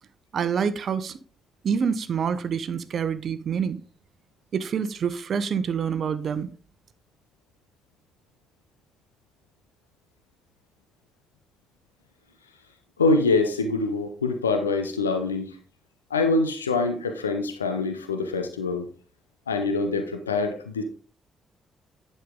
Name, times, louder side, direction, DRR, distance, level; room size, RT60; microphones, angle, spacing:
voice 1, 0.3-1.2 1.6-3.8 4.5-6.5, right 7 dB, 55° right, 0.8 m, -27 dB
voice 2, 13.0-15.5 16.1-18.9 19.5-20.8, left 3 dB, 85° left, 0.6 m, -24 dB
10.5 x 5.5 x 3.7 m
figure-of-eight pair, 40°, 0 cm